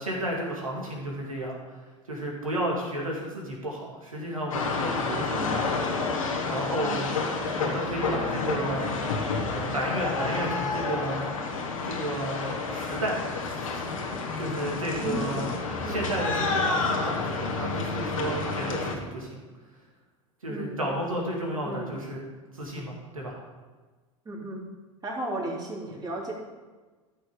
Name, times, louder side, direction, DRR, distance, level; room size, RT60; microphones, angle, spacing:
voice 1, 0.0-1.8 2.1-5.4 6.5-7.1 7.6-9.0 9.5-11.4 11.8-15.5 15.9-19.4 20.4-22.2 22.5-23.4, right 1 dB, 90° right, -2 dB, 2.5 m, -32 dB
sound 1, 4.5-19.0, left 4 dB, 80° left, 1.6 m, -29 dB
voice 2, 5.3-5.7 6.8-7.3 15.0-16.0 20.5-20.8 21.6-22.1 24.3-24.7 25.0-26.3, right 1 dB, 25° right, -3 dB, 3.4 m, -35 dB
13.5 x 6.0 x 4.9 m, 1.3 s
figure-of-eight pair, 80°, 17 cm